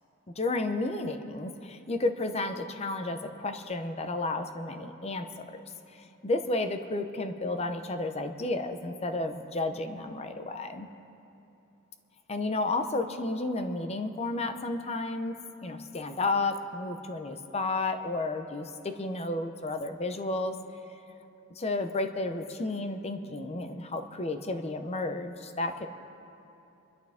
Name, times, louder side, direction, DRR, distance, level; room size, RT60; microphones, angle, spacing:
voice 1, 0.4-10.9 12.3-15.4 15.6-20.6 21.5-25.9, left 2 dB, 30° left, 7 dB, 0.7 m, -32 dB
26.0 x 11.5 x 3.5 m, 2.9 s
head